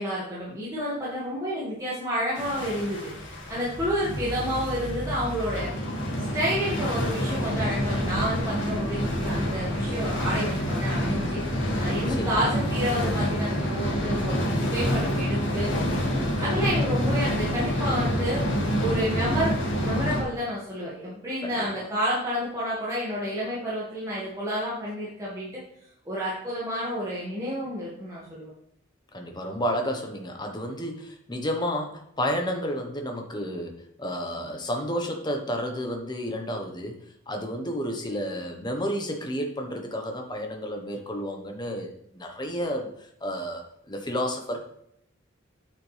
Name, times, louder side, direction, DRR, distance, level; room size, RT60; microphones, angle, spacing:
voice 1, 0.0-5.7 6.3-15.9 16.4-18.5 18.8-25.6 26.1-28.5, equal, 15° right, -8 dB, 2.0 m, -30 dB
sound 1, 2.4-20.2, equal, 65° left, 1.9 m, -27 dB
voice 2, 16.3-16.6 21.4-21.9 29.1-37.0 37.3-44.6, equal, 20° left, 3 dB, 1.2 m, -31 dB
9.2 x 5.8 x 3.4 m, 0.74 s
head